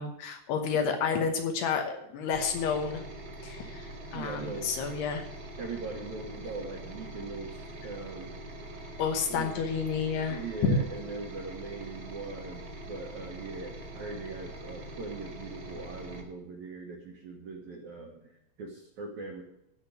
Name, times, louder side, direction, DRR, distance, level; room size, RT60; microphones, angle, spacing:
voice 1, 0.0-3.0 3.4-5.2 9.0-10.8, left 6 dB, 75° left, 4 dB, 3.0 m, -30 dB
sound 1, 2.3-16.2, right 1 dB, 45° right, 1.8 m, -43 dB
voice 2, 4.1-4.8 5.6-8.3 9.3-9.5 10.3-19.4, right 3 dB, 65° right, 1 dB, 1.8 m, -40 dB
14.5 x 5.2 x 9.0 m, 0.80 s
omnidirectional pair, 5.0 m